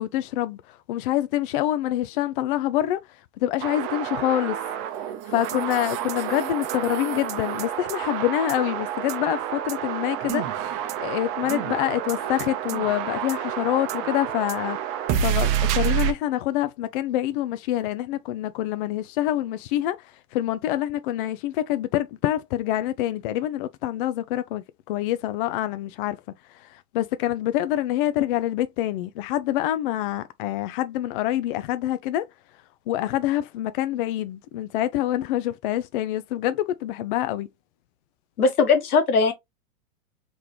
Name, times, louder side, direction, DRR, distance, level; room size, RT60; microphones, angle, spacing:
voice 1, 0.0-4.6 5.3-10.5 10.7-14.8 15.2-26.2 26.5-32.3 32.9-37.5, left 13 dB, 40° left, 0.4 m, -26 dB
sound 1, 3.6-16.1, right 10 dB, 40° right, 0.9 m, -28 dB
voice 2, 38.4-39.3, left 4 dB, 75° left, 1.4 m, -19 dB
3.8 x 3.3 x 3.0 m
hypercardioid pair, 100°, 44 cm